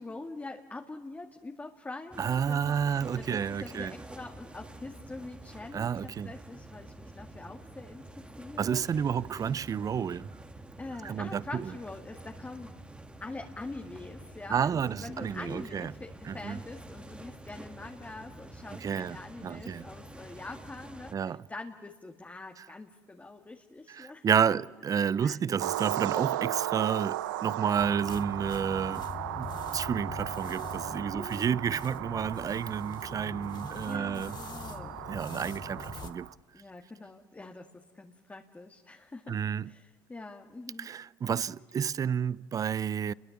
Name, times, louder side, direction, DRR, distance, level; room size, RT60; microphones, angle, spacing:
voice 1, 0.0-8.9 10.8-12.7 13.2-24.3 25.2-25.8 27.6-27.7 28.9-29.1 31.1-31.5 33.9-35.0 36.5-39.4 39.6-40.9, left 2 dB, 15° left, 2.1 m, -44 dB
sound 1, 2.1-21.1, right 1 dB, 10° right, 1.9 m, -48 dB
voice 2, 2.2-3.9 5.7-6.3 8.6-10.3 11.0-11.7 14.5-15.9 16.3-16.6 18.8-19.2 19.4-19.9 21.1-21.5 22.6-22.7 23.9-29.1 29.3-34.4 35.1-36.3 39.3-39.7 40.8-43.1, right 7 dB, 35° right, 0.7 m, -30 dB
sound 2, 25.6-36.3, right 13 dB, 90° right, 0.8 m, -36 dB
sound 3, 27.8-36.2, left 7 dB, 50° left, 2.4 m, -43 dB
29.5 x 22.5 x 7.3 m
supercardioid pair, 75°, 10 cm